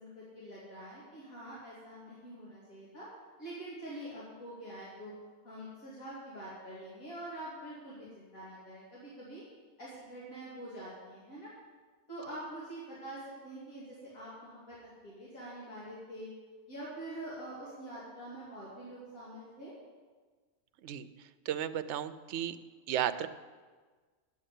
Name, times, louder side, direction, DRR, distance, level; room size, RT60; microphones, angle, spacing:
voice 1, 0.0-3.1 3.4-5.1 5.4-9.4 9.8-11.5 12.1-14.8 15.0-16.3 16.7-19.7, right 1 dB, 75° left, -8 dB, 3.1 m, -45 dB
voice 2, 21.5-22.6 22.9-23.3, right 10 dB, 65° right, 11 dB, 0.8 m, -33 dB
9.3 x 7.6 x 8.4 m, 1.4 s
omnidirectional pair, 1.5 m